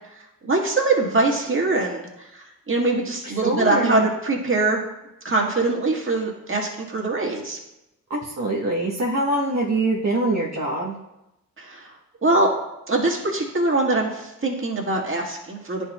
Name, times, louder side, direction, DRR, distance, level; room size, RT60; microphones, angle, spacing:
voice 1, 0.5-2.3 2.7-4.8 5.2-7.6 11.6-11.9 12.2-12.5 12.9-15.8, right 2 dB, 35° right, -1 dB, 1.7 m, -23 dB
voice 2, 3.2-4.1 8.1-10.9, right 2 dB, 50° right, -3 dB, 1.0 m, -24 dB
10.0 x 4.5 x 2.2 m, 0.91 s
cardioid pair, 45°, 34 cm